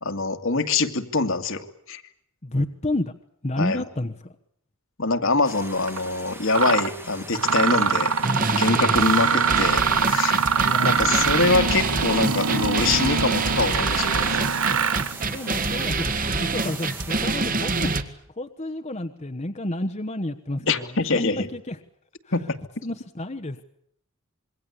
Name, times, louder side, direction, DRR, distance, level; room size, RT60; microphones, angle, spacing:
voice 1, 0.0-2.0 3.6-3.8 5.0-8.1 8.5-9.8 10.1-10.4 10.8-14.4 20.7-21.5 22.3-22.6, left 3 dB, 65° left, 7 dB, 2.3 m, -24 dB
voice 2, 2.4-3.1 3.4-4.3 10.4-11.0 15.3-18.0 18.4-21.8 22.8-23.6, left 1 dB, 30° left, 7 dB, 1.2 m, -30 dB
sound 1, 5.4-17.3, right 2 dB, 10° right, 1.6 m, -42 dB
Mechanisms, 5.9-6.0 6.5-6.9 7.3-15.1, right 5 dB, 80° right, 1.3 m, -23 dB
sound 2, 8.2-18.0, right 3 dB, 40° right, 2.0 m, -27 dB
26.5 x 23.0 x 8.5 m, 0.69 s
head